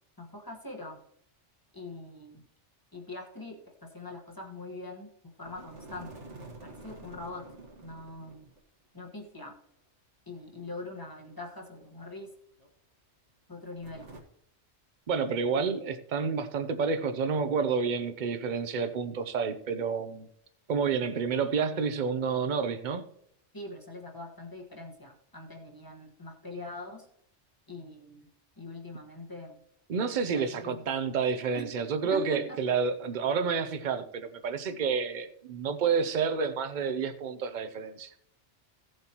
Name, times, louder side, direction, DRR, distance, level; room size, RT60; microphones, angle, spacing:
voice 1, 0.2-1.0 1.7-2.4 2.9-6.3 6.6-7.5 7.8-8.5 8.9-9.6 10.3-12.3 13.5-14.1 23.5-27.1 27.7-28.3 28.6-29.6 30.3-30.9 31.5-31.7 32.1-32.6, left 2 dB, 20° left, 2 dB, 1.4 m, -43 dB
sound 1, 5.4-8.6 8.9-9.0 10.3-12.3 12.6-12.7 13.8-14.2, right 2 dB, 80° right, 2.0 m, -49 dB
voice 2, 15.1-20.3 20.7-23.0 29.9-38.1, right 5 dB, 45° right, 10 dB, 0.8 m, -29 dB
16.0 x 7.7 x 2.9 m, 0.73 s
omnidirectional pair, 1.2 m